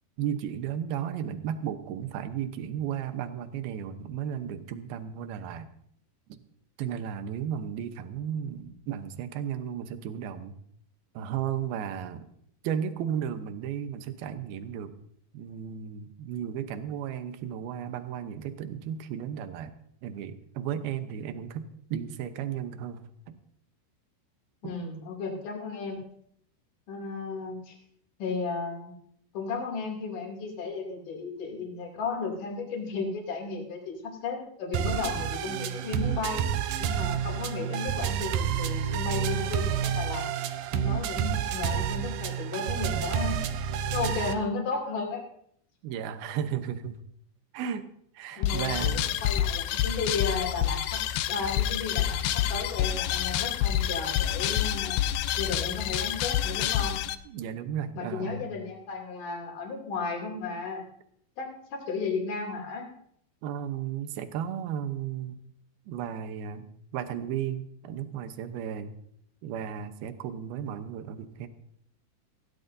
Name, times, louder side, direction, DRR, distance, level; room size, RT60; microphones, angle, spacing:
voice 1, 0.2-5.7 6.3-6.4 6.8-10.6 11.1-12.3 12.6-14.9 15.3-19.7 20.0-21.7 21.9-23.4 24.6-24.8 45.8-47.0 47.5-47.9 48.1-49.1 57.3-58.5 63.4-65.4 65.9-68.9 69.4-71.5, right 9 dB, 70° right, 9 dB, 2.5 m, -34 dB
voice 2, 24.6-26.0 26.9-27.8 28.2-28.9 29.3-36.5 36.8-40.3 40.7-43.4 43.9-45.3 48.4-55.0 55.4-57.0 58.0-60.8 61.4-62.9, left 4 dB, 50° left, 0 dB, 4.0 m, -34 dB
sound 1, 34.7-44.3, right 9 dB, 90° right, 2.0 m, -29 dB
sound 2, 48.4-57.2, left 11 dB, 85° left, 2.1 m, -28 dB
19.5 x 16.5 x 2.7 m, 0.68 s
omnidirectional pair, 5.2 m